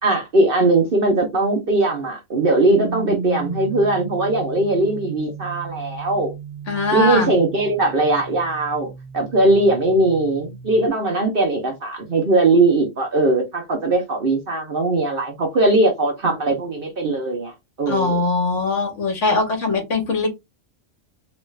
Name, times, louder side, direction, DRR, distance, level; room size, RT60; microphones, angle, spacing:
voice 1, 0.0-6.3 6.9-8.9 9.1-17.5 17.8-18.2, right 2 dB, 45° right, 0.9 m, -19 dB
sound 1, 2.7-10.9, right 6 dB, 75° right, 1.2 m, -35 dB
voice 2, 6.7-7.3 17.9-20.3, left 3 dB, 60° left, 1.4 m, -21 dB
3.1 x 2.5 x 3.1 m
omnidirectional pair, 1.4 m